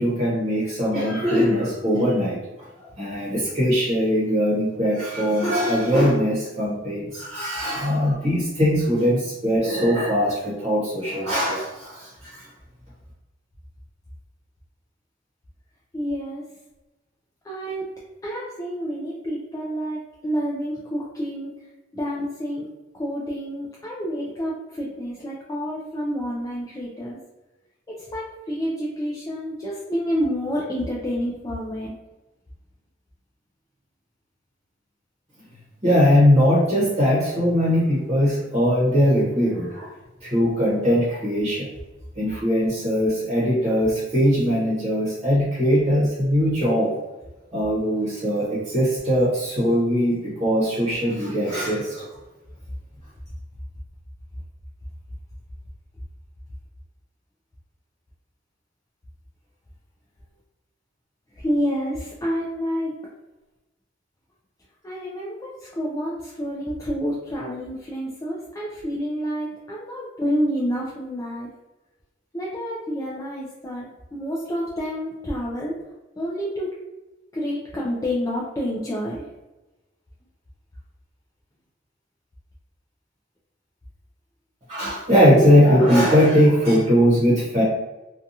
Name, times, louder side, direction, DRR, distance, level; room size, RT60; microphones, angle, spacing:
voice 1, 0.0-2.4 2.8-12.5 35.8-39.9 40.2-41.7 42.2-46.9 47.5-52.1 84.7-87.6, equal, 35° right, -8 dB, 0.8 m, -20 dB
voice 2, 15.9-16.4 17.4-17.9 18.2-21.7 21.9-22.7 22.9-27.2 27.9-32.0 61.3-62.9 64.8-71.5 72.3-75.8 76.2-76.7 77.3-79.3, equal, 20° left, -5 dB, 0.3 m, -28 dB
2.7 x 2.3 x 2.6 m, 1.1 s
head